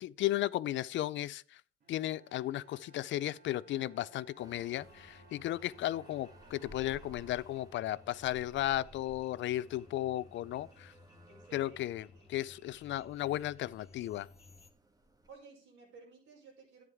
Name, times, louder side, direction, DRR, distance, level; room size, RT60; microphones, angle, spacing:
voice 1, 0.0-1.6 1.9-10.9 11.5-14.3, left 14 dB, 70° left, 0.4 m, -35 dB
Bowed string instrument, 1.8-8.0, right 3 dB, 55° right, 2.4 m, -63 dB
sound 1, 4.4-15.3, right 1 dB, 20° right, 1.5 m, -59 dB
sound 2, 4.8-14.7, left 3 dB, 30° left, 1.8 m, -59 dB
voice 2, 11.3-12.3 15.3-16.8, right 4 dB, 85° right, 5.7 m, -56 dB
11.0 x 9.4 x 3.5 m
cardioid pair, 90°, 20 cm